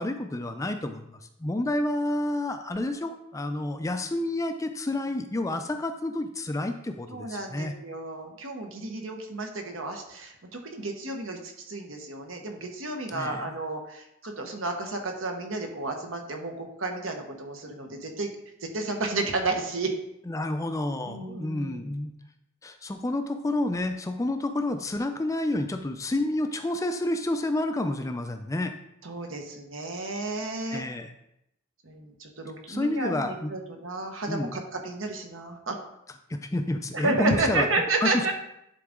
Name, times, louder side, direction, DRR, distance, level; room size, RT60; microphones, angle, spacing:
voice 1, 0.0-7.7 13.1-13.5 20.3-22.1 22.6-28.7 30.7-31.1 32.7-33.5 34.3-34.5 36.3-37.7 38.0-38.3, left 1 dB, 15° left, 7 dB, 0.4 m, -29 dB
voice 2, 7.1-18.3 18.6-19.9 21.1-21.8 29.0-30.8 31.8-35.7 36.9-38.3, right 2 dB, 70° right, 3 dB, 1.1 m, -31 dB
10.5 x 3.9 x 3.7 m, 0.80 s
head